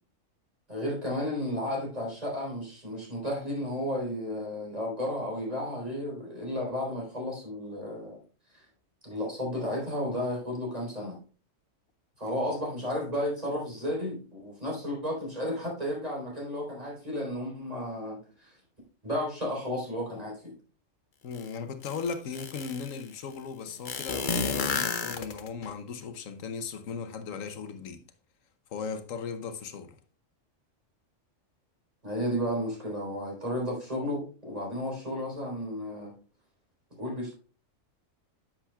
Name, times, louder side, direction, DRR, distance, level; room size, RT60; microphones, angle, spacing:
voice 1, 0.7-8.2 8.5-8.7 9.0-11.2 12.2-18.6 19.0-20.6 32.0-36.1 36.9-37.3, left 1 dB, 30° right, 4.0 m, -33 dB
voice 2, 21.2-28.0 28.7-30.0, left 5 dB, 85° left, 1.2 m, -37 dB
sound 1, 21.3-21.4 21.8-23.0 23.9-25.7, left 5 dB, 45° left, 0.8 m, -31 dB
9.9 x 7.5 x 2.3 m
omnidirectional pair, 1.3 m